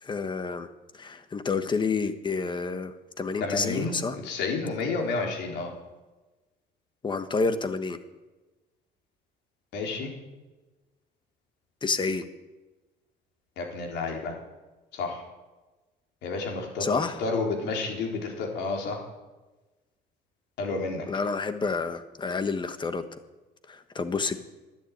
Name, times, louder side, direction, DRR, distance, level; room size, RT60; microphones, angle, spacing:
voice 1, 0.0-4.2 7.0-8.0 11.8-12.3 16.8-17.2 21.1-23.0 23.7-24.4, left 4 dB, 25° left, 10 dB, 1.3 m, -29 dB
voice 2, 3.4-5.7 9.7-10.1 13.6-14.4 14.9-15.2 16.2-19.0 20.6-21.0, left 3 dB, 80° left, 1 dB, 3.9 m, -30 dB
12.0 x 10.5 x 8.8 m, 1.2 s
cardioid pair, 110°, 17 cm